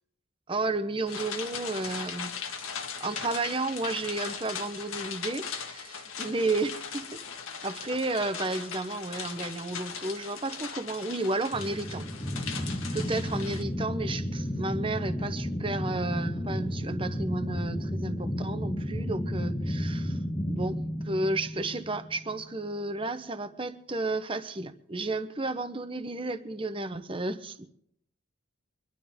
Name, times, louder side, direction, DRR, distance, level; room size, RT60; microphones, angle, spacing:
voice 1, 0.5-2.3 3.0-7.2 7.6-12.1 12.4-20.2 20.5-27.7, right 2 dB, 25° right, 10 dB, 0.9 m, -32 dB
sound 1, 1.1-13.6, left 6 dB, 90° left, 1.8 m, -39 dB
sound 2, 11.5-22.4, equal, 20° left, 1.3 m, -32 dB
24.5 x 12.0 x 3.6 m, 0.70 s
head